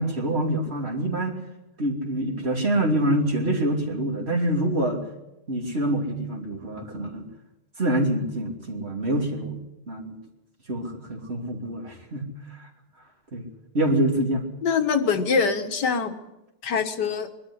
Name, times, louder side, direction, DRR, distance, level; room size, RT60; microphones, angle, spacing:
voice 1, 0.0-1.3 1.8-5.0 5.5-7.3 7.8-9.6 9.9-10.2 10.7-12.7 13.3-13.5 13.7-14.4, right 1 dB, 35° right, 1 dB, 3.3 m, -26 dB
voice 2, 14.6-16.2 16.6-17.3, left 5 dB, 80° left, 8 dB, 2.0 m, -24 dB
22.0 x 12.5 x 9.9 m, 0.94 s
omnidirectional pair, 1.8 m